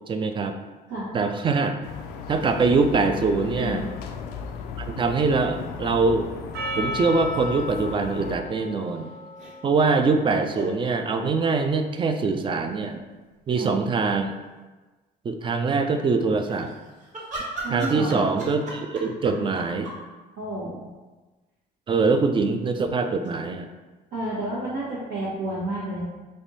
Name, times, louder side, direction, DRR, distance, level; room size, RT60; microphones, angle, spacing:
voice 1, 0.1-0.5 1.1-1.8 2.3-3.9 4.8-6.3 6.8-9.1 9.6-13.0 13.5-14.4 15.2-16.7 17.7-19.9 21.9-23.7, right 4 dB, 30° right, 7 dB, 0.3 m, -23 dB
sound 1, 1.8-8.4, left 6 dB, 90° left, 0.4 m, -36 dB
sound 2, 2.9-4.9 5.2-5.3 7.4-8.1 9.4-9.5 10.5-10.7 12.5-12.9 13.4-13.5 13.7-14.4 16.3-20.0, right 2 dB, 50° right, 1.3 m, -38 dB
voice 2, 3.5-3.9 13.5-13.8 17.6-18.2 20.4-20.9 24.1-26.0, right 1 dB, 85° right, -10 dB, 1.1 m, -30 dB
Percussion, 6.5-11.1, left 1 dB, 70° right, 0.6 m, -36 dB
3.4 x 2.5 x 4.0 m, 1.2 s
cardioid pair, 110°, 17 cm